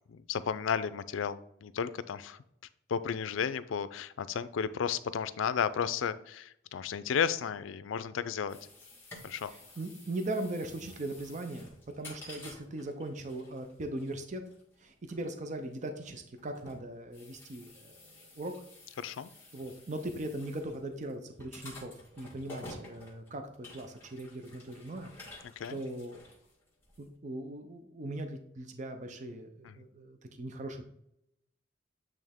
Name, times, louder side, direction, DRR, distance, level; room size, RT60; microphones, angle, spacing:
voice 1, 0.1-2.4 2.9-8.6 9.2-9.5 19.0-19.3 25.6-25.8 29.6-29.8, left 7 dB, 85° left, 15 dB, 0.4 m, -33 dB
sound 1, 8.5-27.1, left 2 dB, 10° left, 1.5 m, -52 dB
voice 2, 9.4-11.7 12.0-14.4 14.8-18.5 19.5-25.2 25.7-26.2 27.0-30.8, right 1 dB, 40° right, 6 dB, 0.5 m, -39 dB
8.6 x 3.3 x 3.5 m, 0.77 s
head